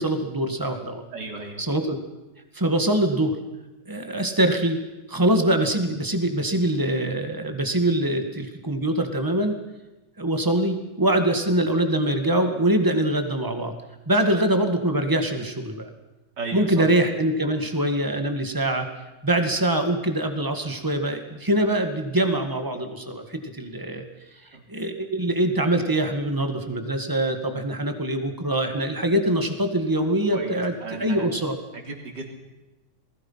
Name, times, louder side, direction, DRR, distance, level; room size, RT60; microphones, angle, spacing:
voice 1, 0.0-1.0 1.6-2.0 2.5-3.4 3.9-4.8 5.1-9.6 10.2-13.7 14.0-15.9 16.5-18.9 19.2-24.0 24.7-31.5, right 1 dB, 10° right, 6 dB, 1.1 m, -23 dB
voice 2, 1.1-1.6 16.4-16.8 24.5-24.6 30.3-31.3 31.7-32.3, right 3 dB, 30° right, 2 dB, 3.9 m, -34 dB
28.5 x 20.5 x 5.8 m, 1.1 s
omnidirectional pair, 3.7 m